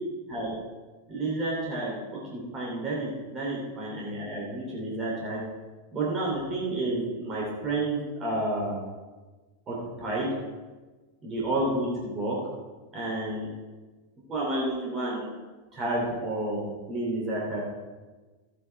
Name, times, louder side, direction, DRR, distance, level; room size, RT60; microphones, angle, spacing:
voice 1, 1.1-5.4 5.9-8.8 9.7-10.4 11.2-12.4 12.9-13.5 14.3-15.3 15.7-17.6, right 2 dB, 25° right, -5 dB, 3.1 m, -30 dB
14.0 x 9.3 x 3.5 m, 1.3 s
figure-of-eight pair, 90°, 0 cm